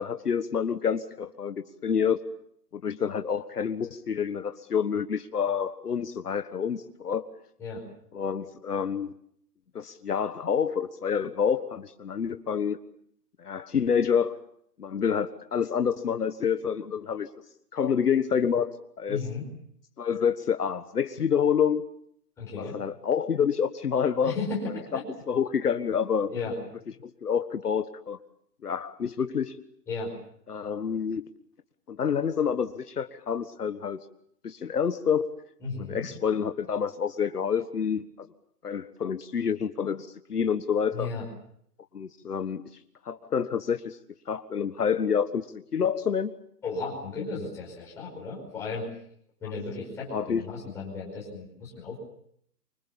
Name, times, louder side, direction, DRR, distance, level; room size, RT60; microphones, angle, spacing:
voice 1, 0.0-2.2 2.7-7.2 8.1-9.1 9.7-12.8 13.4-14.4 14.8-17.3 17.7-19.2 20.0-21.8 22.6-24.3 25.3-26.3 27.0-28.2 28.6-29.6 30.5-31.2 31.9-34.0 34.4-35.3 35.9-38.1 38.6-41.1 41.9-42.6 43.0-44.0 44.3-46.3 50.1-50.4, left 7 dB, 65° left, 9 dB, 1.5 m, -28 dB
voice 2, 19.1-19.4 22.4-22.8 24.2-25.1 26.3-26.6 29.9-30.1 35.6-36.1 40.9-41.3 46.6-48.9 49.4-52.0, left 4 dB, 5° left, -5 dB, 5.2 m, -34 dB
25.5 x 25.0 x 7.2 m, 0.69 s
hypercardioid pair, 180°, 49 cm